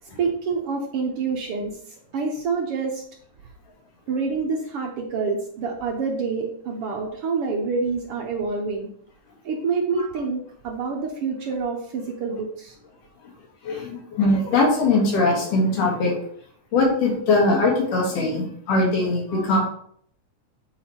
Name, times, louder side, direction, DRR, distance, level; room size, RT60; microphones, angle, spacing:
voice 1, 0.0-3.0 4.1-8.9 9.4-12.7, right 4 dB, 75° right, 0 dB, 1.3 m, -27 dB
voice 2, 13.6-16.2 16.7-19.6, left 2 dB, 75° left, -2 dB, 3.7 m, -21 dB
9.1 x 4.0 x 4.4 m, 0.62 s
omnidirectional pair, 3.8 m